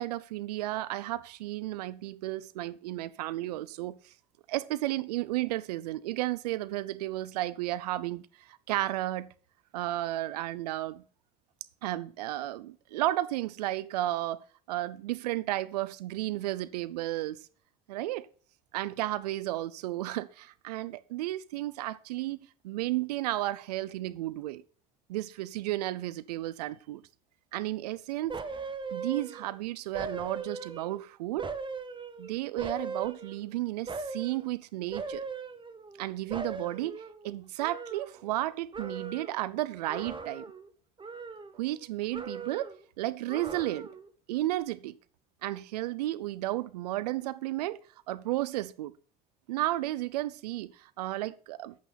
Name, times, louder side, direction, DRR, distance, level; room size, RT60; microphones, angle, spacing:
voice 1, 0.0-4.0 4.5-9.3 9.7-11.0 11.8-17.4 17.9-18.3 18.7-24.6 25.1-27.0 27.5-28.4 28.9-31.5 32.2-35.2 36.0-40.5 41.6-42.7 43.0-43.9 44.3-45.0 45.4-47.8 48.1-48.9 49.5-51.8, right 16 dB, 90° right, 0.6 m, -33 dB
sound 1, 28.3-29.6 29.9-31.0 31.4-33.5 33.9-34.4 34.9-36.0 36.3-38.5 38.7-39.4 39.9-40.7 41.0-41.8 42.1-42.8 43.3-44.1 44.5-44.6, right 4 dB, 25° right, 1.3 m, -39 dB
8.7 x 8.2 x 4.1 m
hypercardioid pair, 70°, 20 cm